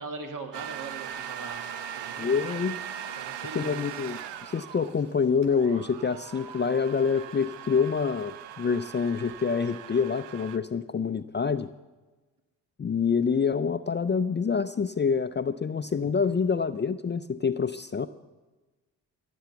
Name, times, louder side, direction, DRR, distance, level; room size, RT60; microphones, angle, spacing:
voice 1, 0.0-2.7 3.2-3.8, right 3 dB, 45° right, 5 dB, 2.0 m, -41 dB
sound 1, 0.5-10.6, right 9 dB, 75° right, 0.8 m, -40 dB
voice 2, 2.2-2.8 3.5-11.7 12.8-18.1, left 6 dB, 25° left, 12 dB, 0.5 m, -27 dB
16.0 x 7.0 x 6.9 m, 1.2 s
hypercardioid pair, 45°, 43 cm